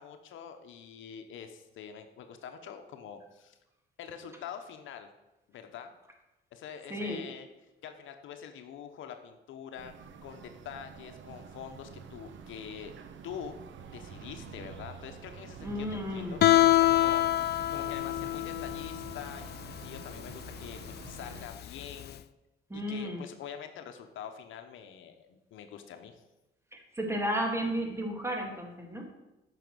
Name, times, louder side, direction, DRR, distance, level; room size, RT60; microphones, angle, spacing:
voice 1, 0.0-3.6 4.0-5.1 5.5-5.9 6.5-7.5 7.8-12.9 13.2-13.6 13.9-22.2 22.7-26.2, left 8 dB, 80° left, 7 dB, 0.9 m, -45 dB
voice 2, 6.9-7.2 15.6-16.4 22.7-23.2 26.7-29.0, equal, 15° right, 2 dB, 2.1 m, -33 dB
sound 1, 9.8-21.5, right 6 dB, 70° right, 1.0 m, -48 dB
Guitar, 16.4-22.1, left 14 dB, 55° left, 0.4 m, -26 dB
9.2 x 5.8 x 6.1 m, 1.0 s
cardioid pair, 90°, 20 cm